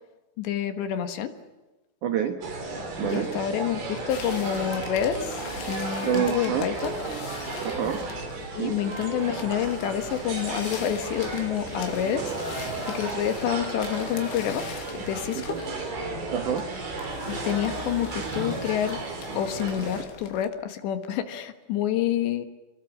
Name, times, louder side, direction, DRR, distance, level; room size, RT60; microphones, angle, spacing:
voice 1, 0.4-1.3 3.0-5.4 5.7-7.0 8.5-12.4 12.9-15.6 17.3-19.0 19.4-22.5, left 10 dB, 70° left, 8 dB, 3.5 m, -28 dB
voice 2, 2.0-2.5 3.0-3.4 6.0-6.7 7.6-8.1 8.5-8.8 15.3-15.6 16.3-16.7, right 9 dB, 85° right, 7 dB, 1.7 m, -28 dB
sound 1, 2.4-20.0, right 3 dB, 55° right, 6.6 m, -34 dB
sound 2, 4.1-20.5, left 6 dB, 85° left, 5.1 m, -43 dB
28.5 x 22.5 x 7.4 m, 1.1 s
omnidirectional pair, 5.7 m